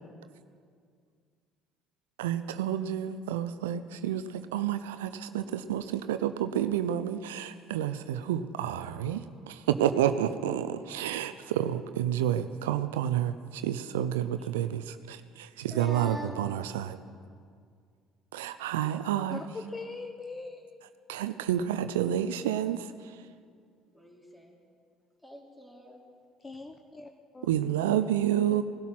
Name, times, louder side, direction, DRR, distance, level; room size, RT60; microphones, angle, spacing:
voice 1, 2.2-17.0 18.3-19.4 21.1-23.3 27.4-28.6, right 10 dB, 80° right, 11 dB, 0.5 m, -30 dB
voice 2, 15.7-16.5 23.9-24.6 25.2-26.0, equal, 10° left, -1 dB, 3.6 m, -43 dB
voice 3, 19.3-20.8 26.4-27.5 28.5-28.6, left 3 dB, 25° left, 5 dB, 1.0 m, -41 dB
19.0 x 12.0 x 5.9 m, 2.1 s
hypercardioid pair, 55°, 0 cm